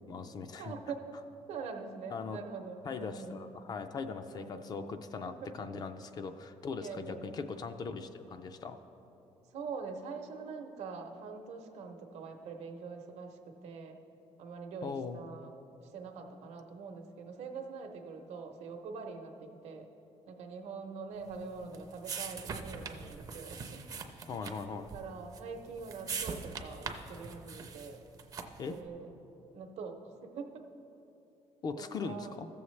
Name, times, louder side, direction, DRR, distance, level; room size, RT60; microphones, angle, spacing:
voice 1, 0.1-0.8 2.1-2.4 2.9-8.8 14.8-15.2 24.3-24.9 28.6-28.8 31.6-32.5, left 5 dB, 35° left, 9 dB, 0.4 m, -40 dB
voice 2, 0.6-1.1 1.5-3.4 4.3-4.7 5.2-5.5 6.8-7.4 9.5-14.0 14.4-15.5 15.8-19.9 20.3-23.8 24.7-28.0 28.7-29.1 29.5-30.6 31.8-32.3, right 5 dB, 70° right, 5 dB, 0.8 m, -44 dB
sound 1, 21.3-28.8, right 5 dB, 30° right, 0.5 m, -43 dB
15.0 x 7.0 x 3.2 m, 2.9 s
cardioid pair, 170°, 12 cm